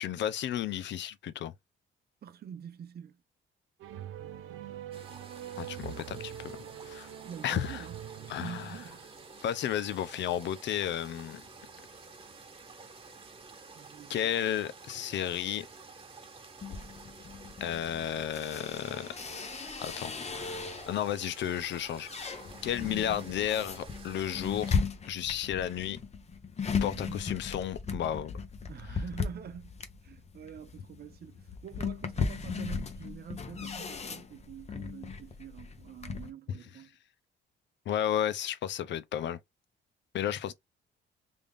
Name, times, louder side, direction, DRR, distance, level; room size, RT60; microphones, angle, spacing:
voice 1, 0.0-1.5 5.6-6.5 6.8-7.1 7.4-7.8 8.3-8.7 9.4-11.4 14.1-15.7 17.6-19.1 19.8-22.3 22.6-26.0 26.8-28.3 37.9-39.4 40.1-40.5, left 10 dB, 65° left, 0.6 m, -33 dB
voice 2, 2.2-3.2 7.2-8.0 8.4-9.1 13.7-14.4 22.8-23.6 26.7-27.2 28.7-36.9 40.2-40.5, right 8 dB, 55° right, 0.7 m, -46 dB
sound 1, 3.8-9.3, right 11 dB, 85° right, 0.6 m, -44 dB
sound 2, 4.9-24.7, right 4 dB, 25° right, 1.3 m, -51 dB
sound 3, 16.6-21.1 21.6-36.3, left 5 dB, 35° left, 0.8 m, -37 dB
3.5 x 2.5 x 3.4 m
cardioid pair, 90°, 20 cm